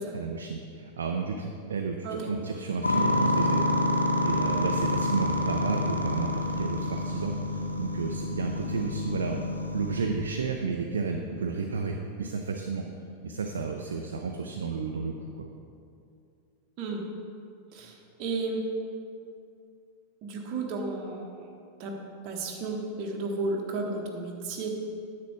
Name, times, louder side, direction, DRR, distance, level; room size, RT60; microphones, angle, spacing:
voice 1, 0.1-3.6 4.2-9.5 9.7-12.8 13.2-15.4, right 4 dB, 65° right, 3 dB, 0.6 m, -32 dB
sound 1, 2.8-10.1, left 1 dB, 80° left, 0.7 m, -28 dB
voice 2, 17.7-18.6 20.2-21.5 21.8-22.0 22.2-24.9, right 3 dB, 40° right, 0 dB, 1.2 m, -33 dB
10.0 x 7.7 x 3.5 m, 2.5 s
figure-of-eight pair, 90°, 0 cm